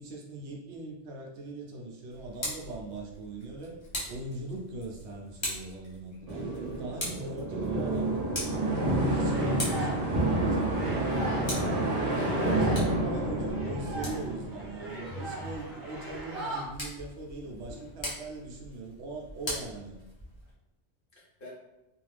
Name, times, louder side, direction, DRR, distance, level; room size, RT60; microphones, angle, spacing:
voice 1, 0.0-3.8 4.1-8.1 8.5-11.1 11.5-20.0, right 2 dB, 75° right, -1 dB, 0.9 m, -40 dB
Tick, 2.1-20.5, equal, 30° left, 0.8 m, -42 dB
sound 1, 6.3-15.1, right 1 dB, 50° right, 0.5 m, -29 dB
sound 2, 8.8-10.4 10.7-16.6, right 1 dB, ahead, 1.0 m, -39 dB
voice 2, 11.1-12.8 15.1-15.2 21.1-21.5, left 1 dB, 55° left, -5 dB, 1.0 m, -42 dB
2.5 x 2.3 x 3.2 m, 0.98 s
omnidirectional pair, 1.2 m